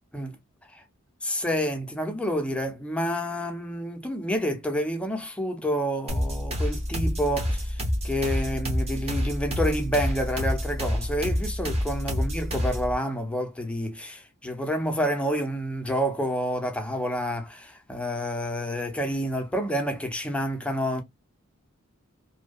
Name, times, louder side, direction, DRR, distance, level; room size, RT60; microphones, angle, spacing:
voice 1, 1.2-21.0, equal, 5° left, 0.4 m, -29 dB
sound 1, 6.1-12.9, equal, 30° right, 0.7 m, -28 dB
2.6 x 2.1 x 2.2 m
head